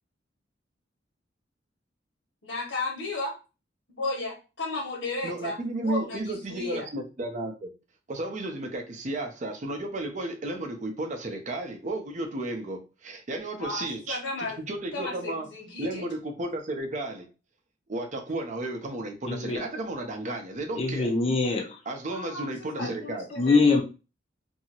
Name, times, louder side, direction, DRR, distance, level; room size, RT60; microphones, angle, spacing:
voice 1, 2.4-3.3 3.9-6.9 13.6-14.6 14.9-16.1 22.1-23.8, left 2 dB, 70° left, 0 dB, 1.1 m, -34 dB
voice 2, 5.2-7.7 8.1-15.5 15.8-17.2 17.9-21.1 21.9-23.3, right 2 dB, 40° right, 4 dB, 0.5 m, -33 dB
voice 3, 19.3-19.6 20.8-21.8 22.8-22.9 23.4-23.8, left 3 dB, 30° left, 1 dB, 0.6 m, -23 dB
2.8 x 2.6 x 2.8 m, 0.31 s
head